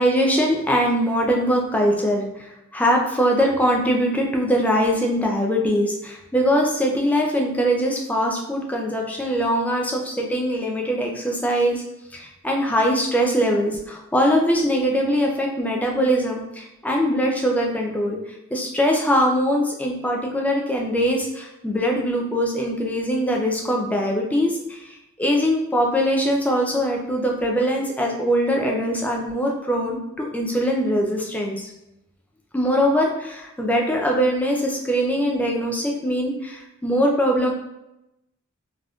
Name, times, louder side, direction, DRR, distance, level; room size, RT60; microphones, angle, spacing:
voice 1, 0.0-11.8 12.1-18.2 18.5-31.6 32.5-37.5, equal, 5° left, 0 dB, 0.3 m, -22 dB
3.4 x 2.5 x 2.3 m, 0.89 s
head